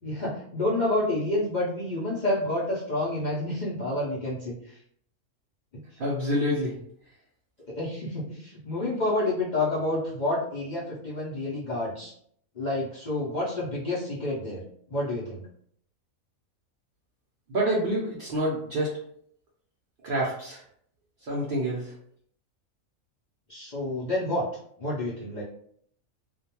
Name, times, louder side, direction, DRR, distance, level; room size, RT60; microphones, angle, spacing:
voice 1, 0.0-4.7 7.7-12.1 12.6-14.6 14.9-15.4 23.5-24.4 24.8-25.4, left 1 dB, 50° left, -7 dB, 0.5 m, -29 dB
voice 2, 6.0-6.8 17.5-18.9 20.0-20.6 21.2-21.9, right 1 dB, 60° right, -4 dB, 0.5 m, -27 dB
2.4 x 2.2 x 2.8 m, 0.65 s
omnidirectional pair, 1.5 m